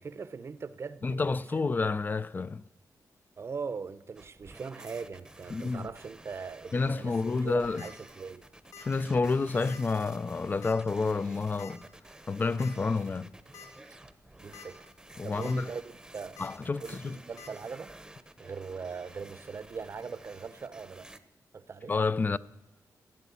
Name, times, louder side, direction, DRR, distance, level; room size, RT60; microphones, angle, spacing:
voice 1, 0.0-1.7 3.4-8.5 13.9-14.0 14.4-14.8 15.2-16.4 16.8-17.9 18.4-21.1 21.5-21.9, right 5 dB, 45° right, 0.7 m, -41 dB
voice 2, 1.0-2.6 5.5-5.9 6.7-7.8 8.8-11.8 12.3-13.3 15.2-15.7 16.4-17.2 21.9-22.4, left 4 dB, 30° left, 0.4 m, -29 dB
sound 1, 4.2-21.2, right 1 dB, 10° right, 0.8 m, -51 dB
sound 2, 7.8-7.9 8.7-9.0 9.2-9.3 9.7-9.8 10.6-10.9 11.6-11.7 12.6-12.7 13.2-13.3 13.5-13.7 14.3-14.7 15.1-15.5 16.4-16.5 17.4-17.5, left 7 dB, 80° left, 2.6 m, -48 dB
15.5 x 10.0 x 8.4 m
wide cardioid pair, 120°, 6 cm